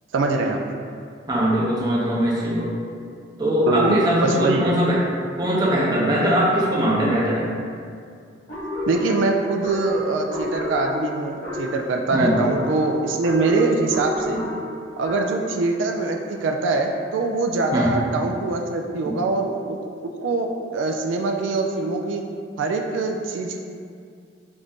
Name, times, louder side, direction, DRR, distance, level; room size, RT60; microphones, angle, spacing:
voice 1, 0.1-0.6 3.7-4.7 6.1-6.2 8.9-14.4 15.0-22.2 22.6-23.6, right 3 dB, 85° right, 2 dB, 0.3 m, -23 dB
voice 2, 1.3-2.7 3.4-5.0 5.4-7.5 12.1-12.4 14.3-14.4 17.7-17.9 19.0-19.2, equal, 20° right, -5 dB, 0.6 m, -21 dB
sound 1, 8.5-15.5, left 1 dB, 60° left, 1.3 m, -31 dB
4.1 x 2.5 x 3.5 m, 2.2 s
head